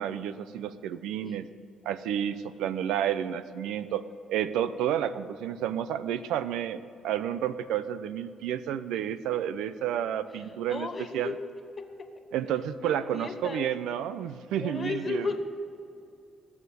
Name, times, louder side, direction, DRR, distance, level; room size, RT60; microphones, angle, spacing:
voice 1, 0.0-1.5 1.8-11.3 12.3-15.3, right 10 dB, 90° right, 13 dB, 0.6 m, -31 dB
voice 2, 10.4-11.4 11.8-12.2 12.8-13.7 14.6-15.4, left 4 dB, 35° left, 7 dB, 1.6 m, -35 dB
19.5 x 7.3 x 8.4 m, 2.6 s
cardioid pair, 90°, 0 cm